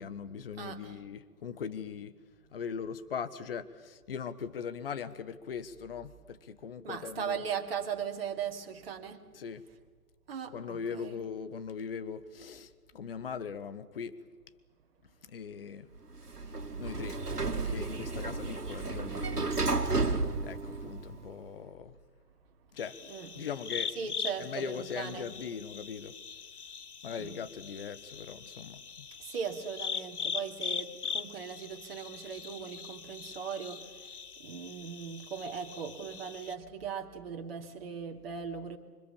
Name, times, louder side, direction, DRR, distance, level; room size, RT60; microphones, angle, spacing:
voice 1, 0.0-2.2 2.5-7.4 9.3-9.6 10.5-14.2 15.3-15.9 16.8-17.2 17.6-19.6 20.4-22.0 22.7-23.0 23.4-24.0 24.4-26.2 27.0-29.1, left 6 dB, 35° left, 12 dB, 1.3 m, -40 dB
voice 2, 0.5-1.0 1.7-1.9 2.6-2.7 6.8-9.3 10.3-11.2 23.0-23.5 23.9-25.4 27.2-27.4 29.2-38.8, right 7 dB, 40° right, 3 dB, 2.7 m, -39 dB
Sliding door, 16.1-21.4, right 3 dB, 75° right, 2.4 m, -32 dB
sound 1, 22.8-36.5, left 6 dB, 70° left, 1.0 m, -41 dB
26.0 x 24.5 x 7.3 m, 1.5 s
figure-of-eight pair, 135°, 47 cm